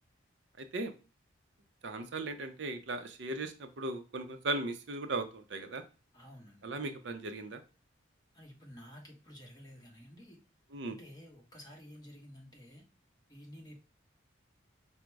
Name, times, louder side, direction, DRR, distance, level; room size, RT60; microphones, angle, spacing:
voice 1, 0.6-0.9 1.8-5.8 6.6-7.6 10.7-11.0, right 2 dB, 60° right, 8 dB, 0.5 m, -37 dB
voice 2, 6.1-6.6 8.3-10.4 10.9-12.8 13.3-13.8, equal, 20° left, -1 dB, 1.1 m, -52 dB
5.0 x 2.1 x 4.5 m, 0.32 s
head